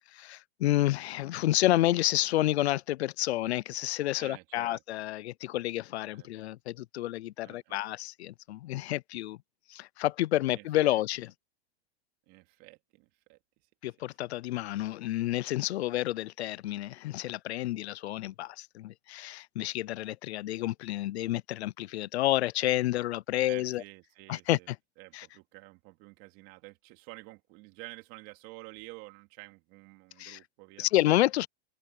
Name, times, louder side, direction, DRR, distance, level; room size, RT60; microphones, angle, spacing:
voice 1, 0.1-9.4 9.7-11.3 13.8-23.8 24.3-24.8 25.1-25.3 30.2-30.4 30.8-31.5, left 15 dB, 90° left, 0.6 m, -30 dB
voice 2, 4.1-4.8 6.1-6.3 7.4-7.9 10.5-11.0 12.3-13.4 23.4-24.7 25.0-30.9, right 24 dB, 45° right, 2.9 m, -50 dB
open air
supercardioid pair, 150°, 31 cm